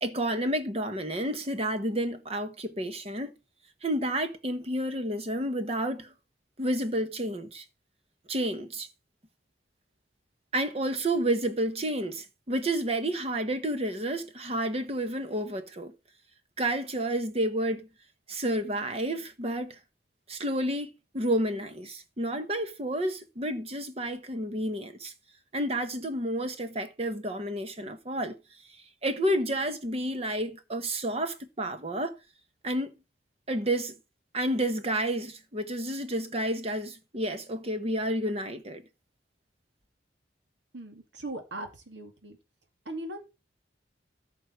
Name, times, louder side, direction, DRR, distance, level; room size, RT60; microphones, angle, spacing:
voice 1, 0.0-3.3 3.8-6.1 6.6-7.6 8.3-8.9 10.5-15.9 16.6-17.9 18.3-19.8 20.3-25.1 25.5-28.4 29.0-32.1 32.6-32.9 33.5-34.0 34.3-38.8, right 1 dB, 35° right, 1.2 m, -30 dB
voice 2, 40.7-42.4 42.9-43.2, right 1 dB, 80° right, 2.3 m, -39 dB
14.0 x 5.4 x 4.6 m
head